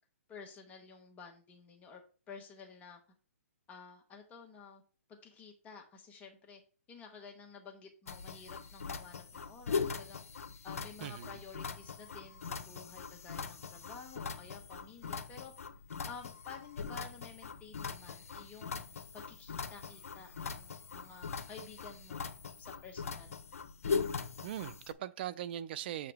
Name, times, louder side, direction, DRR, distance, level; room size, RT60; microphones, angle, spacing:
voice 1, 0.3-2.0 2.3-3.0 3.7-4.8 5.1-6.6 6.9-10.2 10.6-15.5 16.1-18.8 19.1-22.2 22.6-23.3, left 5 dB, 20° left, 1.3 m, -52 dB
sound 1, 8.1-24.9, left 5 dB, 75° left, 0.8 m, -41 dB
voice 2, 11.0-11.4 24.4-26.1, right 11 dB, 45° right, 0.5 m, -40 dB
7.5 x 3.7 x 3.5 m
hypercardioid pair, 140°, 8 cm